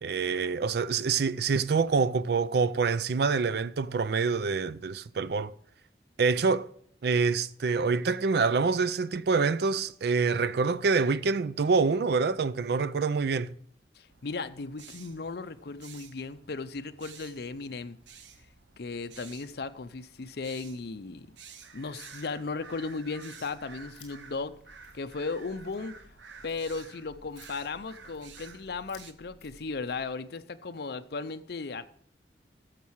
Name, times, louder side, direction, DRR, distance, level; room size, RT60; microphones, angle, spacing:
voice 1, 0.0-5.5 6.2-6.7 7.0-13.5, right 4 dB, 60° right, 0.4 m, -26 dB
voice 2, 13.9-18.0 18.8-21.4 21.7-24.5 24.9-25.9 26.4-31.8, left 4 dB, 60° left, 0.6 m, -36 dB
sound 1, 14.1-29.1, right 6 dB, 85° right, 0.8 m, -52 dB
sound 2, 23.5-30.1, left 2 dB, 40° left, 3.4 m, -57 dB
12.5 x 7.4 x 4.7 m
head